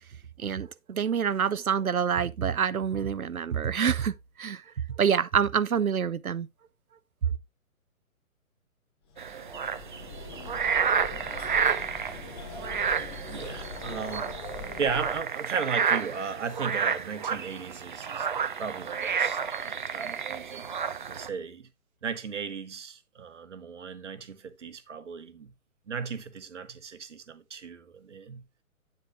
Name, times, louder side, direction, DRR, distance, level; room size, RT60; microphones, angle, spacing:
voice 1, 0.4-4.6 5.0-6.5, right 7 dB, 75° right, 0.7 m, -27 dB
sound 1, 9.1-15.2, left 4 dB, 20° left, 1.1 m, -42 dB
sound 2, 9.2-21.3, right 7 dB, 35° right, 0.6 m, -30 dB
voice 2, 13.3-14.4 14.8-20.7 21.1-21.7 22.0-25.5 25.9-28.5, right 6 dB, 55° right, 1.3 m, -36 dB
9.8 x 9.2 x 2.3 m
figure-of-eight pair, 130°, 43 cm